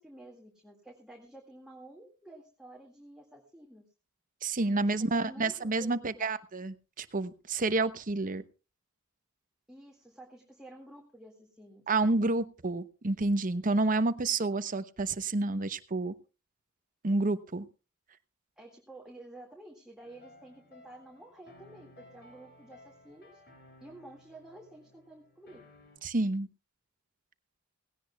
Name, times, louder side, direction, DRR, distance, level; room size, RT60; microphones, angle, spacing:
voice 1, 0.0-3.9 5.0-6.4 9.7-11.9 18.6-23.4 23.8-25.6, right 1 dB, 5° right, -1 dB, 2.0 m, -51 dB
voice 2, 4.4-8.4 11.9-16.1 17.0-17.7 26.0-26.5, right 2 dB, 40° right, 13 dB, 0.8 m, -29 dB
sound 1, 20.0-26.0, left 1 dB, 50° left, 7.5 m, -58 dB
18.5 x 17.0 x 2.3 m, 0.32 s
head